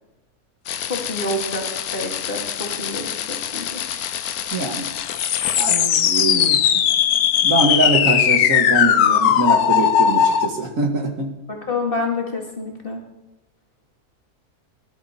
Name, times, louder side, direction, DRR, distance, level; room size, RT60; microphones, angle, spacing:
sound 1, 0.7-10.5, left 9 dB, 75° left, 1.2 m, -20 dB
voice 1, 0.8-1.6 1.9-3.8 11.5-13.0, left 2 dB, 35° left, 1 dB, 2.2 m, -28 dB
voice 2, 4.5-4.9 5.5-6.6 7.4-11.3, right 3 dB, 60° right, 4 dB, 1.9 m, -23 dB
19.0 x 11.5 x 4.3 m, 1.0 s
omnidirectional pair, 1.6 m